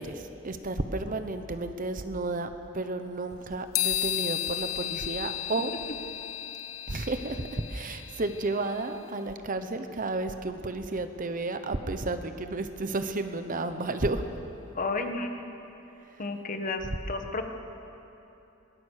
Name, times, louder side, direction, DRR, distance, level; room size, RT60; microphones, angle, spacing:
voice 1, 0.0-5.7 6.9-14.2 16.0-16.2, right 2 dB, 40° right, 9 dB, 1.0 m, -32 dB
sound 1, 3.7-9.0, left 13 dB, 90° left, 1.0 m, -34 dB
voice 2, 14.7-15.6 16.2-17.5, left 3 dB, 40° left, 5 dB, 1.5 m, -32 dB
22.5 x 19.0 x 6.6 m, 3.0 s
head